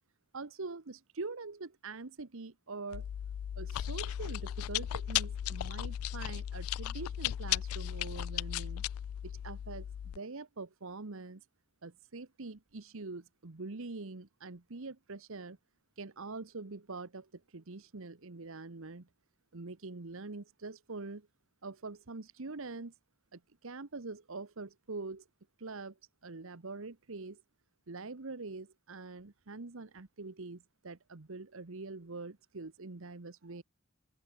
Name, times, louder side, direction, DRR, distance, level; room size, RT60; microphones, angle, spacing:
voice 1, 0.3-3.1 3.6-8.8 9.2-11.4 11.8-15.6 16.0-19.1 19.5-21.3 21.6-22.9 23.3-25.2 25.6-26.0 26.2-27.4 27.9-33.6, right 3 dB, 65° right, 1.1 m, -44 dB
Chewing mastication, 2.9-10.2, left 11 dB, 75° left, 0.3 m, -36 dB
open air
head